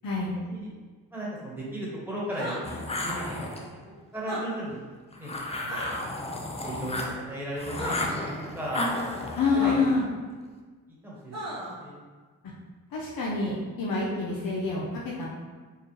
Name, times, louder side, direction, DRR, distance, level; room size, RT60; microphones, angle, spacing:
voice 1, 0.0-0.4 9.4-10.1 12.9-15.3, left 4 dB, 65° left, -4 dB, 0.8 m, -27 dB
voice 2, 1.1-2.8 3.0-3.6 4.1-4.8 5.2-5.3 5.6-6.1 6.6-8.9 9.5-9.8 11.0-11.5 11.8-11.9, right 1 dB, 5° right, -6 dB, 1.4 m, -35 dB
sound 1, 2.3-2.6 4.2-4.4 5.7-5.9 7.8-8.0 9.6-9.7 11.3-11.7, right 1 dB, 45° right, 1.3 m, -34 dB
sound 2, 2.6-3.7 5.1-7.2 7.6-10.0, left 1 dB, 15° left, 0.6 m, -33 dB
4.5 x 2.4 x 3.2 m, 1.4 s
supercardioid pair, 55°, 37 cm